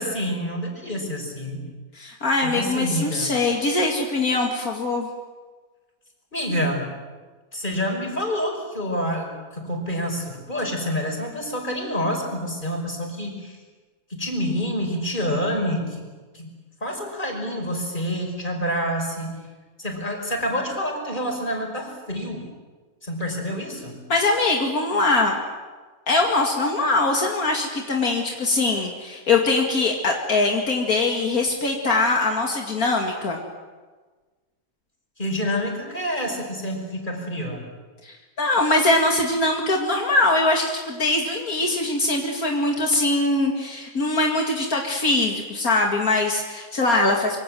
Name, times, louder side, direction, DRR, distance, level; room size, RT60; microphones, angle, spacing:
voice 1, 0.0-1.7 2.4-3.4 6.3-6.9 7.5-13.6 14.1-16.1 16.3-16.5 16.8-19.4 19.8-22.4 23.0-24.0 35.2-37.7, equal, 35° left, 2 dB, 5.7 m, -27 dB
voice 2, 1.9-5.1 24.1-25.4 26.1-33.4 38.0-47.4, left 2 dB, 75° left, 1 dB, 2.7 m, -22 dB
26.0 x 24.5 x 7.7 m, 1.3 s
omnidirectional pair, 1.5 m